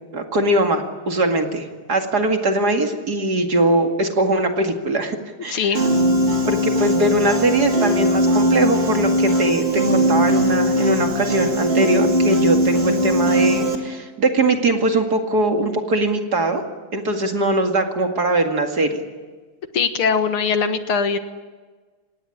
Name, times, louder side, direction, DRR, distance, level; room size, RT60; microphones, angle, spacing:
voice 1, 0.1-5.7 6.4-16.6 16.9-19.0, right 2 dB, 45° right, 4 dB, 2.7 m, -21 dB
voice 2, 5.5-5.8 19.7-21.2, left 5 dB, 75° left, 8 dB, 2.4 m, -21 dB
Piano, 5.7-13.8, equal, 30° right, 2.9 m, -19 dB
25.5 x 19.0 x 10.0 m, 1.4 s
omnidirectional pair, 2.4 m